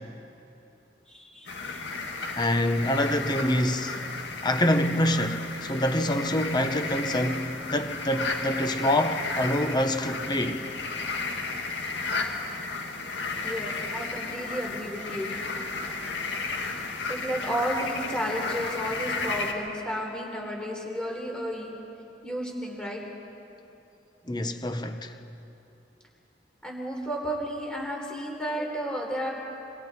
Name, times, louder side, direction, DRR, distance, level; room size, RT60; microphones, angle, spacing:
voice 1, 1.1-1.8 13.4-15.3 17.1-21.7 22.2-23.0 26.6-29.3, equal, 5° left, 3.9 m, -32 dB
sound 1, 1.5-19.5, left 3 dB, 85° left, 1.9 m, -33 dB
voice 2, 2.4-4.0 4.4-10.6 24.3-25.2, left 1 dB, 25° left, 1.0 m, -26 dB
26.0 x 24.5 x 4.4 m
head